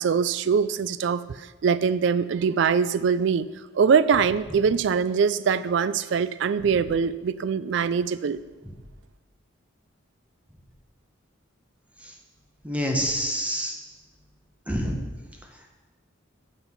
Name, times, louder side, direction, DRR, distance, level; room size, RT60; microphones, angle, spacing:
voice 1, 0.0-3.5 3.7-8.4, right 6 dB, 60° right, 16 dB, 0.3 m, -23 dB
voice 2, 12.6-13.7 14.7-15.0, equal, 5° right, 2 dB, 0.9 m, -26 dB
7.9 x 6.4 x 5.4 m, 1.2 s
head